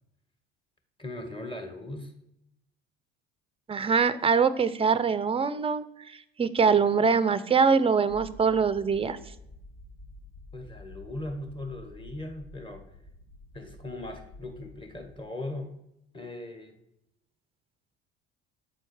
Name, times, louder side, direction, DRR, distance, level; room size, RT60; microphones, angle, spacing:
voice 1, 1.0-2.1 10.5-12.8 13.5-15.7 16.1-16.7, left 1 dB, 15° left, 4 dB, 1.5 m, -39 dB
voice 2, 3.7-5.8 6.4-9.2, right 5 dB, 20° right, 14 dB, 0.5 m, -23 dB
sound 1, 8.1-15.2, left 2 dB, 30° left, 1.4 m, -49 dB
7.8 x 4.4 x 4.8 m, 0.80 s
hypercardioid pair, 70°, 32 cm